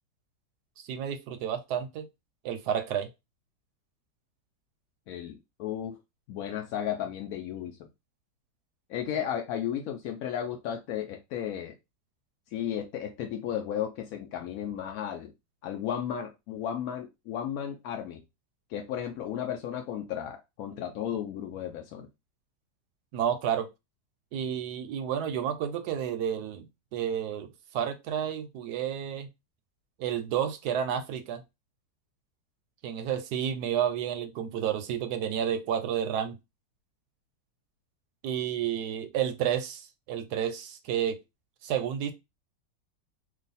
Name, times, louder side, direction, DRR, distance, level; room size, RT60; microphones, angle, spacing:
voice 1, 0.9-2.1 2.4-3.1 23.1-23.7 24.3-26.7 26.9-29.3 30.0-31.4 32.8-36.4 38.2-41.2 41.6-42.1, right 9 dB, 75° right, 1.0 m, -30 dB
voice 2, 5.1-6.0 6.3-7.9 8.9-11.7 12.5-15.3 15.6-18.2 18.7-22.1, left 9 dB, 70° left, 0.8 m, -34 dB
3.0 x 2.3 x 3.9 m
omnidirectional pair, 1.9 m